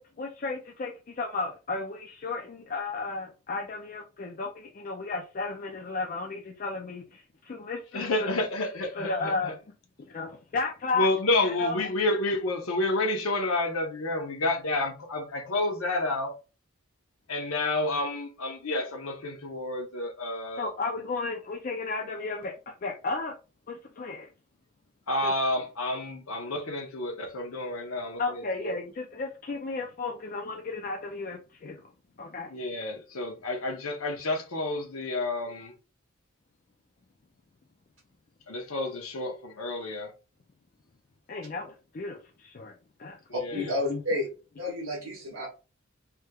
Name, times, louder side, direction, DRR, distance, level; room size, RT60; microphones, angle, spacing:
voice 1, 0.0-8.4 8.9-9.5 10.1-11.1 11.4-11.8 20.6-22.5 22.8-23.3 23.7-24.3 25.2-25.3 28.2-31.8 32.2-32.5 41.3-42.7 43.0-43.2 43.5-44.0, left 3 dB, 40° left, 0.4 m, -34 dB
voice 2, 7.9-9.5 10.9-16.4 17.3-20.7 25.1-28.7 32.5-35.7 38.5-40.1 43.3-43.6, left 2 dB, 85° left, 0.8 m, -30 dB
voice 3, 43.3-44.3 44.6-45.5, left 1 dB, 70° right, 1.2 m, -31 dB
3.4 x 3.1 x 2.3 m
head